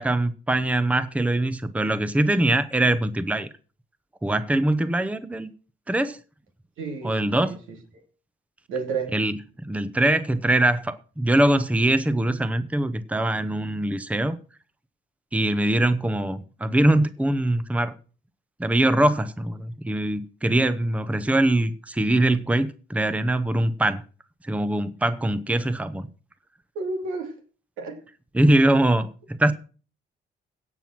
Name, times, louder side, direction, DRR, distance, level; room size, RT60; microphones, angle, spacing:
voice 1, 0.0-3.5 4.2-5.5 5.9-6.2 7.0-7.6 9.1-14.4 15.3-17.9 18.6-24.0 24.4-26.1 28.3-29.5, right 1 dB, 5° right, 0.8 m, -22 dB
voice 2, 6.8-8.0 8.7-9.2 26.7-27.3 27.8-28.0, right 4 dB, 85° right, 2.9 m, -32 dB
16.5 x 6.1 x 5.9 m
cardioid pair, 90°, 20 cm